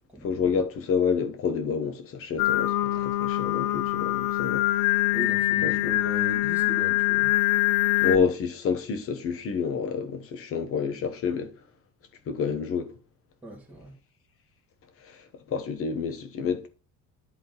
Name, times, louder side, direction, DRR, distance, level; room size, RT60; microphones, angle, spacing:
voice 1, 0.2-4.6 5.6-5.7 8.0-11.5 12.3-12.9 15.0-15.2 15.5-16.7, left 6 dB, 45° left, 1.1 m, -28 dB
Singing, 2.4-8.2, left 17 dB, 75° left, 0.5 m, -24 dB
voice 2, 5.1-7.3 13.4-13.9, right 1 dB, 5° right, 2.0 m, -38 dB
11.0 x 3.8 x 3.9 m
cardioid pair, 170°, 31 cm